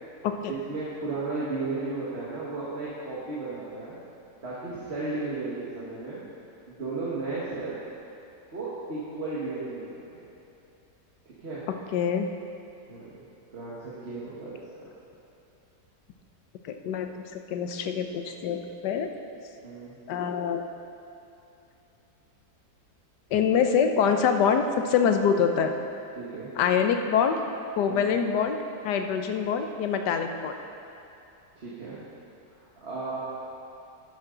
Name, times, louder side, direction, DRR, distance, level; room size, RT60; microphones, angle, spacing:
voice 1, 0.5-4.0 4.4-6.2 6.7-7.8 8.5-10.2 11.2-11.6 12.9-13.2 13.5-14.6 19.6-19.9 26.1-26.5 27.9-28.1 31.6-32.0 32.8-33.2, right 3 dB, 40° right, -8 dB, 1.6 m, -34 dB
voice 2, 11.7-12.3 16.6-19.1 20.1-20.6 23.3-25.7 26.6-27.4 27.8-28.6 28.8-30.5, left 7 dB, 75° left, 6 dB, 1.3 m, -25 dB
11.5 x 10.5 x 3.8 m, 2.8 s
omnidirectional pair, 1.9 m